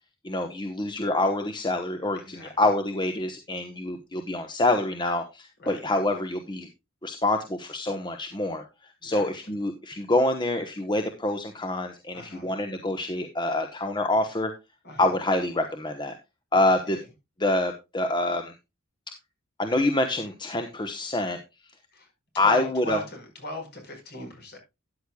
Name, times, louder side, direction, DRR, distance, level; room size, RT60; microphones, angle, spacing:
voice 1, 0.2-6.7 7.0-8.6 9.0-14.5 15.0-16.1 16.5-17.0 17.4-18.5 19.6-21.4 22.4-23.0, left 2 dB, 20° left, 6 dB, 1.0 m, -26 dB
voice 2, 2.1-2.5 5.6-5.8 9.0-9.3 12.1-12.5 14.8-15.1 16.9-17.0 21.9-22.1 22.4-24.6, left 2 dB, 50° left, 4 dB, 4.9 m, -38 dB
13.0 x 10.0 x 2.3 m, 0.24 s
head